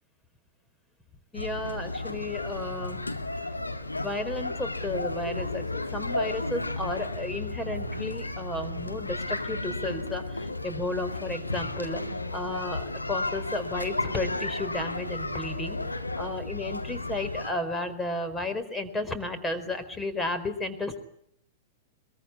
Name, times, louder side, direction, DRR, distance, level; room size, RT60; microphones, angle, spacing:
voice 1, 1.3-3.0 4.0-12.0 12.3-21.0, left 2 dB, 10° left, 8 dB, 4.5 m, -33 dB
sound 1, 1.4-17.5, left 2 dB, 90° left, 2.3 m, -33 dB
23.0 x 23.0 x 9.9 m, 0.71 s
figure-of-eight pair, 100°, 0 cm